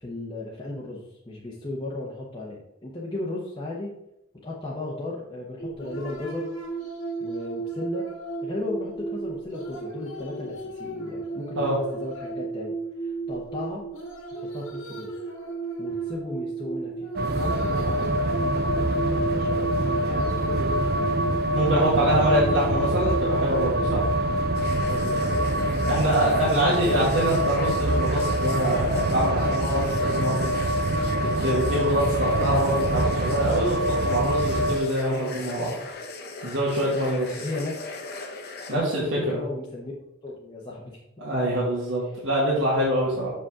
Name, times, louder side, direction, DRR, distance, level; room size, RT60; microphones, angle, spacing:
voice 1, 0.0-3.9 4.4-6.5 7.2-8.1 8.4-12.7 13.0-13.8 14.4-15.1 15.8-21.1 21.6-22.3 24.7-26.1 26.5-26.9 28.7-28.8 37.3-37.8 38.7-39.9 40.2-41.0, left 2 dB, 20° left, -5 dB, 0.9 m, -35 dB
sound 1, 5.6-25.1, right 4 dB, 75° left, 1.7 m, -34 dB
sound 2, 17.2-34.8, right 1 dB, 50° right, 0.5 m, -25 dB
voice 2, 21.5-24.0 25.8-30.6 31.4-35.7 36.4-37.5 38.7-39.4 41.2-43.3, right 1 dB, 70° right, -7 dB, 1.8 m, -25 dB
sound 3, 24.5-38.8, left 3 dB, 50° left, 0.9 m, -38 dB
6.9 x 5.2 x 3.7 m, 0.89 s
head